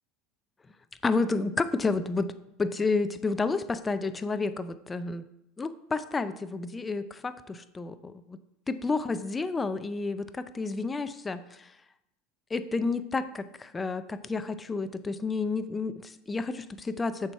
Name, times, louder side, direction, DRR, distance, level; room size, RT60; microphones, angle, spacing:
voice 1, 1.0-2.3 2.6-5.2 5.6-8.4 8.7-11.7 12.5-17.3, left 3 dB, 20° left, 12 dB, 0.5 m, -30 dB
6.7 x 4.5 x 4.5 m, 0.83 s
hypercardioid pair, 85°, 0 cm